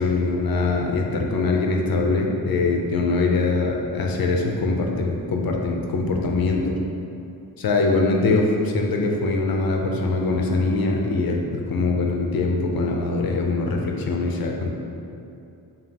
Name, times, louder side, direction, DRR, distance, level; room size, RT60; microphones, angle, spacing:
voice 1, 0.0-6.8 7.6-14.7, left 3 dB, 65° left, 1 dB, 0.5 m, -22 dB
5.1 x 2.4 x 2.8 m, 2.7 s
wide cardioid pair, 110°, 38 cm